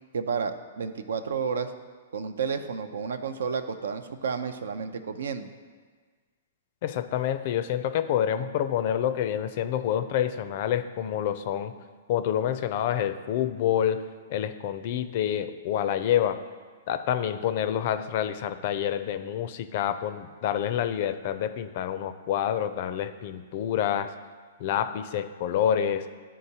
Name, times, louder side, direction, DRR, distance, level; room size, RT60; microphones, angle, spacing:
voice 1, 0.1-1.7 2.1-5.5, right 6 dB, 80° right, 9 dB, 0.4 m, -31 dB
voice 2, 6.8-11.7 12.1-16.4 16.9-24.1 24.6-26.1, left 10 dB, 50° left, 11 dB, 0.4 m, -27 dB
11.0 x 3.7 x 2.8 m, 1.5 s
hypercardioid pair, 135°, 0 cm